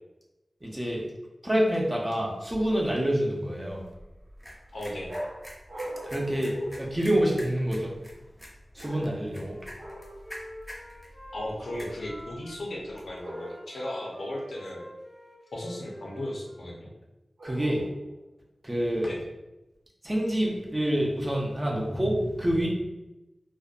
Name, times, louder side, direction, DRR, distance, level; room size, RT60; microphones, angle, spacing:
voice 1, 0.6-1.0 1.4-3.8 6.0-7.9 8.7-9.6 17.4-17.9 18.6-19.1 20.0-22.7, equal, 15° right, -2 dB, 0.6 m, -27 dB
sound 1, 3.7-13.2, equal, 5° left, 0.9 m, -48 dB
voice 2, 4.7-5.1 11.3-14.8 15.5-16.9 19.1-19.2, left 1 dB, 90° left, -2 dB, 0.6 m, -36 dB
sound 2, 5.1-7.6 8.8-9.4 9.8-10.2 13.2-13.9 17.4-18.1, right 1 dB, 75° right, 0.7 m, -41 dB
Wind instrument woodwind instrument, 9.3-12.6 13.2-16.7, equal, 30° left, 0.6 m, -47 dB
2.6 x 2.1 x 2.4 m, 1.0 s
wide cardioid pair, 75°, 0 cm